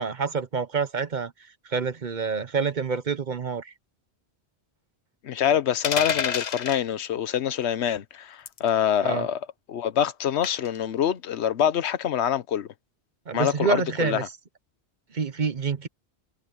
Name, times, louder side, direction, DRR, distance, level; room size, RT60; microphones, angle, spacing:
voice 1, 0.0-1.3 1.6-3.7 9.0-9.3 13.3-14.2 15.1-15.9, right 5 dB, 45° right, 1.0 m, -27 dB
voice 2, 5.2-9.4 9.7-12.7 13.3-14.3, left 9 dB, 85° left, 1.1 m, -25 dB
sound 1, 5.8-6.8 8.5-8.7 10.4-10.8, left 7 dB, 45° left, 0.8 m, -28 dB
omnidirectional pair, 1.1 m